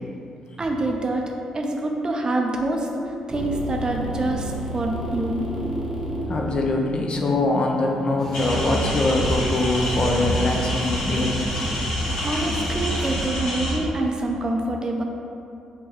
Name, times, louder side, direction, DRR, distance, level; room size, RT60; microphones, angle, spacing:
voice 1, 0.6-5.5 12.1-15.0, right 2 dB, 35° right, 1 dB, 0.5 m, -26 dB
sound 1, 3.3-8.4, right 1 dB, 15° right, 0.9 m, -31 dB
voice 2, 6.3-11.5, left 2 dB, 45° left, 1 dB, 0.5 m, -23 dB
sound 2, 8.2-13.3, equal, 20° left, 0.9 m, -35 dB
sound 3, 8.3-13.7, equal, 75° left, 0.8 m, -26 dB
4.6 x 2.2 x 3.0 m, 2.6 s
hypercardioid pair, 45°, 2 cm